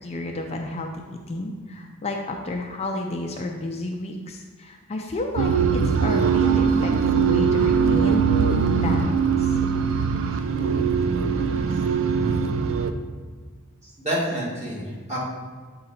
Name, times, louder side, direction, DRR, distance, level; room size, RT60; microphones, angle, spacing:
voice 1, 0.0-9.5, left 2 dB, 30° left, 2 dB, 0.5 m, -31 dB
sound 1, 5.4-12.9, right 6 dB, 65° right, 0.4 m, -21 dB
voice 2, 14.0-15.2, right 1 dB, 30° right, -6 dB, 2.0 m, -28 dB
8.1 x 3.8 x 4.2 m, 1.5 s
head